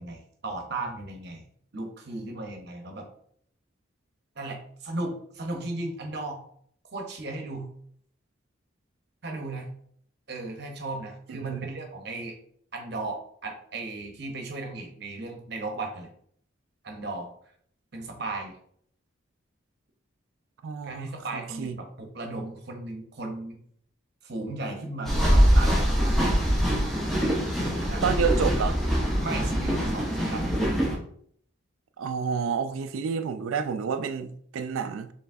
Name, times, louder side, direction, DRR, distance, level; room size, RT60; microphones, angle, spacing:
voice 1, 0.0-1.4 1.7-3.1 4.4-6.4 6.9-7.7 9.2-9.7 10.3-12.4 12.7-16.1 16.8-17.3 17.9-18.6 20.8-23.6 24.2-26.2 27.2-28.2 29.2-30.6, right 2 dB, 55° right, 0.8 m, -36 dB
voice 2, 20.6-21.8 28.0-28.8 32.0-35.1, right 6 dB, 80° right, 0.3 m, -29 dB
sound 1, 25.1-31.0, equal, ahead, 0.6 m, -23 dB
4.5 x 3.2 x 2.6 m
head